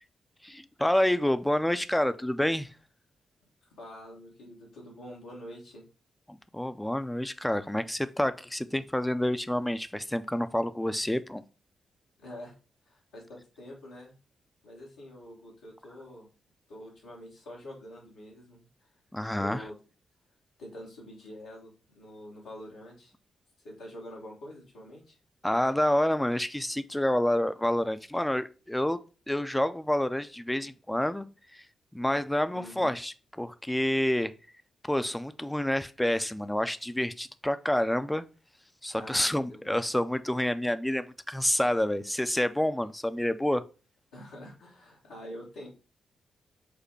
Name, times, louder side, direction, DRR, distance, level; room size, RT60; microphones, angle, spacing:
voice 1, 0.4-2.7 6.3-11.4 19.1-19.6 25.4-29.0 29.3-31.3 31.5-31.6 31.9-34.3 34.9-38.2 38.8-43.6, left 1 dB, 10° left, 0.5 m, -28 dB
voice 2, 3.8-5.8 12.2-12.5 12.9-14.1 14.6-16.3 16.7-18.9 19.4-19.7 20.6-23.1 23.6-25.2 32.5-32.9 38.9-39.8 44.1-45.7, equal, 90° left, 1.2 m, -46 dB
5.1 x 2.1 x 4.7 m
hypercardioid pair, 40°, 0 cm